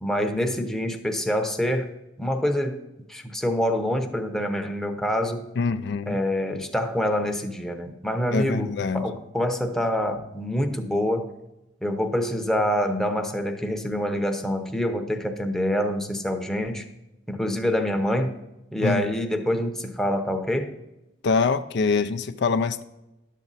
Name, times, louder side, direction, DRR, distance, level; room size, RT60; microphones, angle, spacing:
voice 1, 0.0-1.9 2.2-2.8 3.1-5.4 6.1-11.3 11.8-16.8 17.3-18.4 18.7-20.7, equal, 5° left, 4 dB, 0.7 m, -26 dB
voice 2, 5.6-6.2 8.3-9.0 18.8-19.0 21.2-22.8, left 4 dB, 65° left, 11 dB, 0.4 m, -24 dB
11.0 x 7.4 x 4.0 m, 0.94 s
head